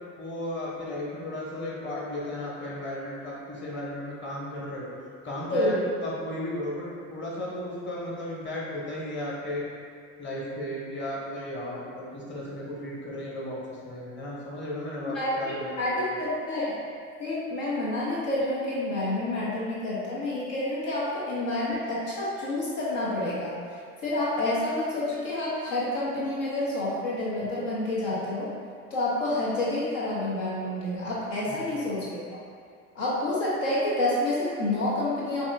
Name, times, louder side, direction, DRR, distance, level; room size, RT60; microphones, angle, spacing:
voice 1, 0.2-4.9 5.2-5.7 6.0-9.6 10.2-16.1 31.5-31.6, left 1 dB, 30° left, -5 dB, 1.3 m, -34 dB
voice 2, 5.5-5.8 15.1-16.8 17.2-23.6 24.0-28.6 28.9-32.4 32.9-35.4, left 1 dB, 75° left, -7 dB, 0.9 m, -28 dB
5.9 x 2.6 x 2.4 m, 2.2 s
hypercardioid pair, 65°, 38 cm